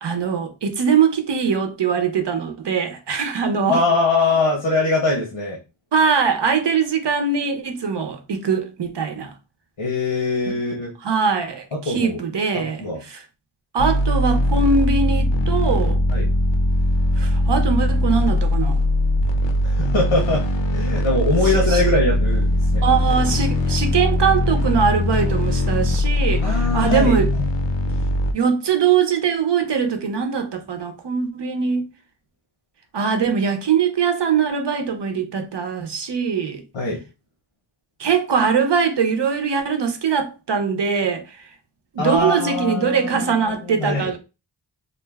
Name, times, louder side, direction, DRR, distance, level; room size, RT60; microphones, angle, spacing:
voice 1, 0.0-3.8 5.9-9.3 10.5-10.6 11.0-13.2 13.7-16.0 17.2-18.8 21.4-21.8 22.8-27.3 28.3-31.9 32.9-36.6 38.0-41.4 41.9-44.2, right 6 dB, 60° right, 0.6 m, -22 dB
voice 2, 3.7-5.6 9.8-10.9 11.8-12.2 12.8-13.0 16.1-16.3 19.6-20.4 20.7-22.8 26.4-27.2 36.7-37.0 42.0-43.4 43.6-44.1, left 3 dB, 85° left, 0.9 m, -22 dB
sound 1, 13.8-28.3, left 1 dB, 65° left, 0.6 m, -20 dB
2.5 x 2.2 x 3.3 m
wide cardioid pair, 75°, 47 cm